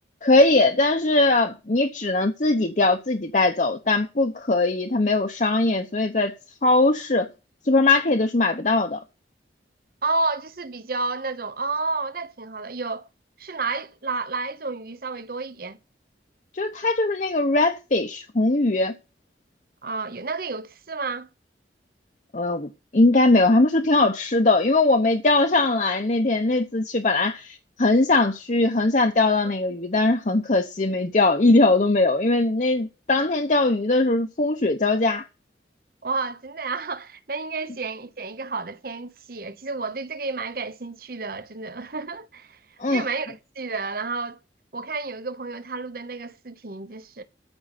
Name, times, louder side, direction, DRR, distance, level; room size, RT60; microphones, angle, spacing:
voice 1, 0.2-6.3 6.6-7.3 7.7-9.0 16.5-18.9 22.3-35.3 42.8-43.0, left 2 dB, 45° left, 0.9 m, -20 dB
voice 2, 10.0-13.1 13.4-15.8 19.8-21.3 36.0-42.6 42.9-44.4 44.7-47.2, right 3 dB, 55° right, 1.0 m, -31 dB
13.5 x 5.4 x 7.2 m
head